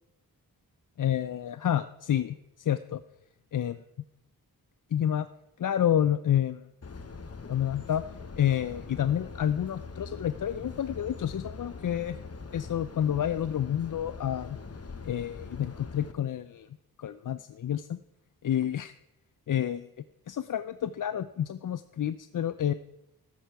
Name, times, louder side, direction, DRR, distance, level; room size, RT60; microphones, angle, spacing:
voice 1, 1.0-3.0 3.5-3.8 4.9-5.3 5.6-6.6 7.5-8.0 8.4-12.2 12.5-14.6 15.0-16.7 17.0-18.0 18.4-18.9 19.5-19.9 20.3-22.7, left 10 dB, 55° left, 14 dB, 0.5 m, -29 dB
sound 1, 6.8-16.1, left 4 dB, 40° left, 1.2 m, -43 dB
13.0 x 10.0 x 4.7 m, 0.86 s
cardioid pair, 60°, 38 cm